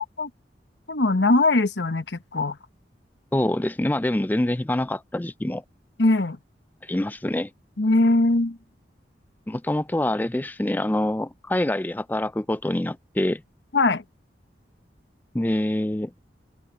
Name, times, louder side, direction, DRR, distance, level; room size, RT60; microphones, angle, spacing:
voice 1, 0.9-2.6 6.0-6.4 7.8-8.6 13.7-14.0, left 2 dB, 80° left, 1.2 m, -21 dB
voice 2, 3.3-5.6 6.8-7.5 9.5-13.4 15.3-16.1, left 1 dB, 10° left, 0.4 m, -25 dB
open air
head